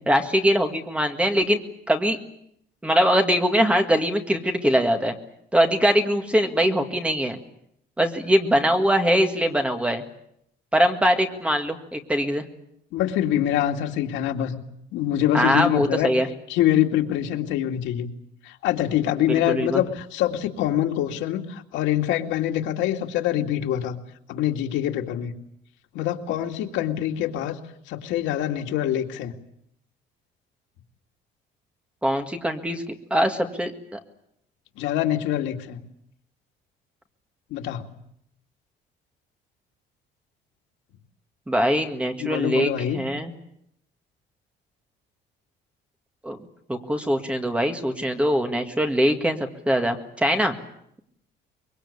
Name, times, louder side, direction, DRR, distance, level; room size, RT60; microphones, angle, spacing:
voice 1, 0.1-1.6 1.9-2.2 2.8-5.2 5.5-7.4 8.0-10.0 10.7-12.4 15.3-16.3 19.3-19.8 32.0-32.8 33.1-33.7 41.5-43.3 46.2-46.4 46.7-50.6, equal, 5° right, 5 dB, 1.8 m, -22 dB
voice 2, 12.9-14.6 14.9-16.1 16.5-18.1 18.4-24.0 24.3-25.3 25.9-27.6 27.9-29.3 34.8-35.8 37.5-37.9 42.2-43.0, left 11 dB, 85° left, 4 dB, 2.3 m, -25 dB
24.5 x 22.5 x 8.5 m, 0.73 s
cardioid pair, 175°, 19 cm